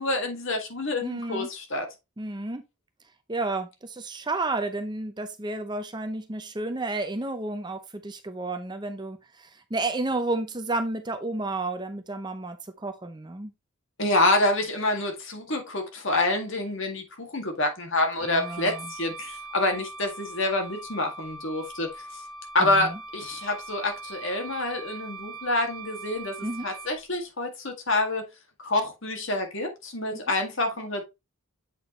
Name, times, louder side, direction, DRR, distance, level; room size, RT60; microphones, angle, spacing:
voice 1, 0.0-1.9 14.0-21.9 22.5-26.3 26.6-28.2 28.6-31.0, left 2 dB, 60° left, 2.0 m, -27 dB
voice 2, 1.0-1.5 2.2-2.6 3.3-13.5 18.2-18.9 22.6-23.0 26.4-26.7, right 2 dB, 20° right, 0.6 m, -31 dB
Wind instrument woodwind instrument, 18.2-27.0, right 3 dB, 80° right, 1.2 m, -41 dB
7.9 x 4.7 x 3.1 m
head